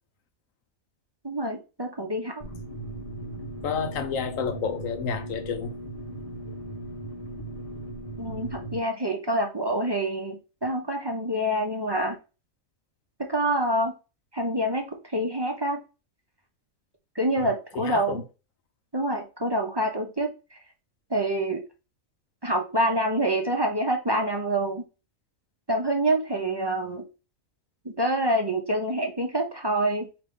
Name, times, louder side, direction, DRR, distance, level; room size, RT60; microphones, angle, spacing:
voice 1, 1.2-2.3 8.2-12.2 13.3-13.9 14.3-15.8 17.1-18.2 18.9-20.6 21.1-21.6 22.4-24.8 25.7-27.1 27.8-30.1, right 1 dB, 20° right, 0.7 m, -26 dB
sound 1, 2.4-8.8, right 1 dB, 25° left, 1.3 m, -38 dB
voice 2, 3.6-5.7 17.4-18.2, left 6 dB, 75° left, 1.0 m, -31 dB
4.9 x 2.9 x 3.8 m
omnidirectional pair, 1.4 m